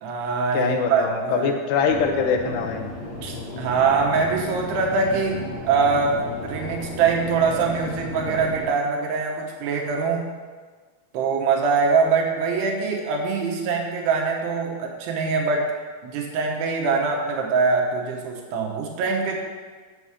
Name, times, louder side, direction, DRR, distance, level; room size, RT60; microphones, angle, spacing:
voice 1, 0.0-1.5 3.2-10.3 11.1-15.7 16.0-19.4, right 4 dB, 80° right, 1 dB, 3.1 m, -23 dB
voice 2, 0.5-2.9, left 5 dB, 85° left, 4 dB, 2.9 m, -23 dB
sound 1, 1.9-8.7, left 1 dB, 40° left, 1.6 m, -34 dB
7.6 x 7.0 x 4.9 m, 1.5 s
omnidirectional pair, 4.8 m